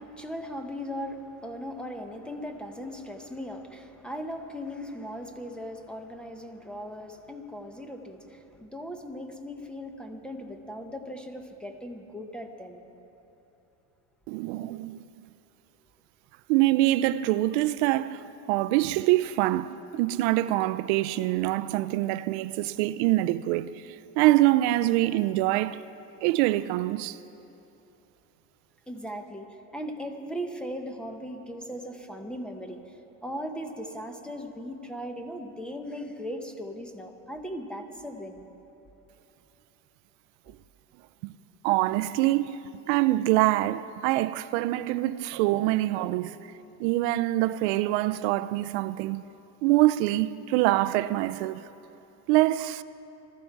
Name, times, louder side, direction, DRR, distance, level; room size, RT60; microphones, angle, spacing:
voice 1, 0.0-12.9 28.9-38.5, equal, 5° left, 0.8 m, -38 dB
voice 2, 14.3-15.0 16.5-25.8 26.2-27.2 40.5-40.6 41.2-41.4 41.6-46.4 46.8-49.2 49.6-51.6 52.3-52.8, right 16 dB, 80° right, 0.5 m, -25 dB
21.0 x 13.5 x 4.6 m
cardioid pair, 155°, 34 cm